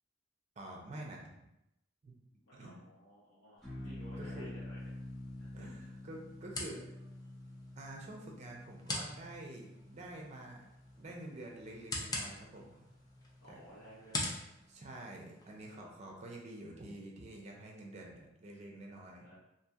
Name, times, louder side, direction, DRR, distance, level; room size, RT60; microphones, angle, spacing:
voice 1, 0.6-1.2 2.0-2.2 2.5-2.7 3.8-4.5 5.5-7.0 7.8-10.7 11.0-12.9 13.5-13.6 14.7-19.3, right 1 dB, 35° right, 0 dB, 0.5 m, -48 dB
voice 2, 2.4-4.9 5.4-5.7 13.4-14.4 15.6-16.2 19.2-19.3, equal, 75° left, -10 dB, 0.9 m, -56 dB
sound 1, 3.6-14.1, left 1 dB, ahead, 0.8 m, -49 dB
sound 2, 4.8-15.7, left 2 dB, 20° left, 0.4 m, -45 dB
2.8 x 2.7 x 2.3 m, 0.86 s
head